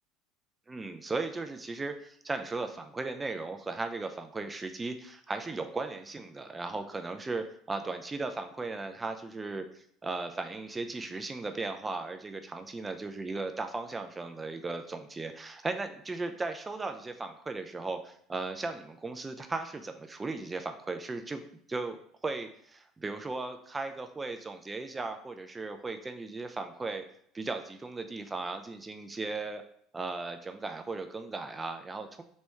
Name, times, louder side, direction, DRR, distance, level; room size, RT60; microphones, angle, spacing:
voice 1, 0.7-21.4 21.7-22.0 22.2-27.0 27.3-29.6 29.9-32.2, right 3 dB, 20° right, 7 dB, 0.3 m, -37 dB
3.1 x 3.0 x 3.4 m, 0.65 s
figure-of-eight pair, 65°, 0 cm